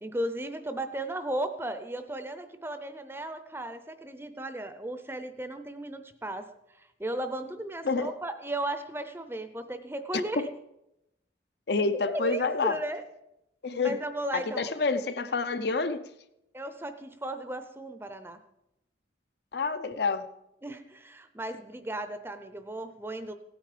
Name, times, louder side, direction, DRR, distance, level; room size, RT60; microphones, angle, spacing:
voice 1, 0.0-6.5 7.0-10.4 12.1-13.0 13.8-14.7 16.5-18.4 20.6-23.3, right 1 dB, 10° right, 9 dB, 0.6 m, -35 dB
voice 2, 11.7-12.8 13.6-14.0 14.3-16.0 19.5-20.3, left 4 dB, 60° left, 10 dB, 0.7 m, -28 dB
16.5 x 9.2 x 5.0 m, 0.88 s
head